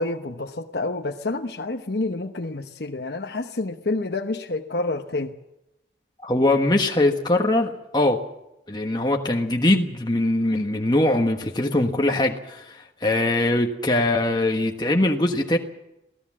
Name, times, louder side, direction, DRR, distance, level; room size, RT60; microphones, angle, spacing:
voice 1, 0.0-5.3, left 2 dB, 70° left, 4 dB, 1.0 m, -28 dB
voice 2, 6.2-8.2 8.7-15.6, left 1 dB, 25° left, 2 dB, 1.3 m, -22 dB
23.0 x 17.0 x 7.5 m, 0.88 s
head